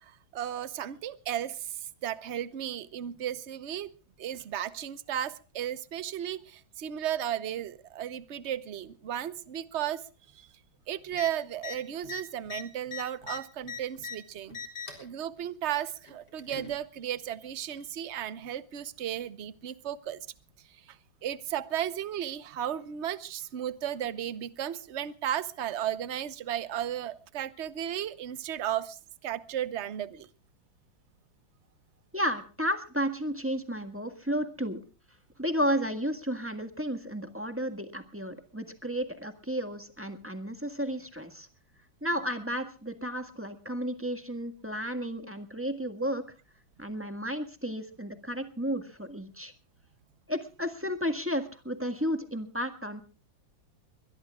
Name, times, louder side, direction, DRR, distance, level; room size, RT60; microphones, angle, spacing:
voice 1, 0.0-3.9 4.2-10.0 10.3-10.5 10.9-14.6 15.0-20.2 20.9-21.0 21.2-30.3, right 10 dB, 50° right, 0.9 m, -34 dB
sound 1, 11.1-11.3 11.6-11.8 12.0-14.2 14.5-15.1 16.0-16.7 17.8-17.9, left 5 dB, 55° left, 4.5 m, -40 dB
voice 2, 32.1-34.8 35.4-41.5 42.0-46.2 46.8-49.5 50.3-53.0, equal, 5° right, 1.4 m, -32 dB
22.0 x 21.5 x 2.4 m
omnidirectional pair, 2.2 m